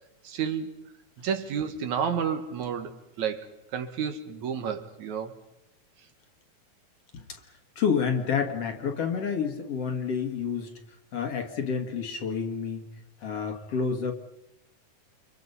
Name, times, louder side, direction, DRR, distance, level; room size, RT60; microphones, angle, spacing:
voice 1, 0.2-0.7 1.2-5.3, right 7 dB, 70° right, 7 dB, 2.8 m, -31 dB
voice 2, 7.8-10.7 11.1-12.8 13.2-14.1, left 6 dB, 55° left, 5 dB, 2.3 m, -29 dB
29.5 x 24.5 x 5.5 m, 0.89 s
omnidirectional pair, 3.6 m